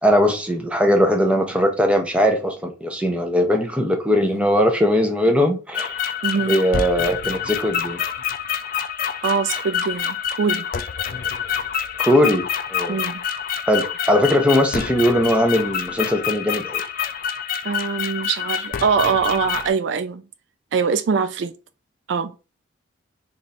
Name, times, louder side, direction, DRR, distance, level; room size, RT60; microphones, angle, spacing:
voice 1, 0.0-6.0 6.5-8.0 12.0-13.0 13.7-16.8, equal, 5° right, 0.5 m, -19 dB
sound 1, 5.7-19.7, left 8 dB, 45° left, 0.3 m, -27 dB
voice 2, 6.2-6.6 9.2-10.7 12.9-13.2 17.6-20.2 20.7-21.5 22.1-22.3, right 6 dB, 65° right, 0.3 m, -23 dB
3.2 x 2.6 x 4.1 m
head